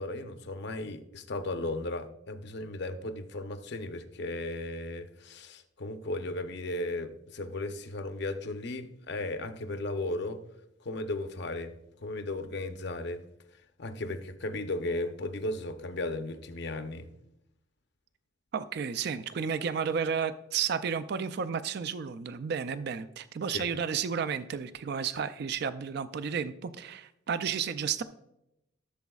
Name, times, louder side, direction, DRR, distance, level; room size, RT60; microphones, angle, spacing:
voice 1, 0.0-10.4 10.8-11.7 12.0-13.2 13.8-17.1 23.5-23.7, left 2 dB, 55° left, 8 dB, 0.7 m, -35 dB
voice 2, 18.5-28.0, right 6 dB, 55° right, 12 dB, 0.4 m, -32 dB
14.5 x 7.1 x 2.3 m, 0.82 s
head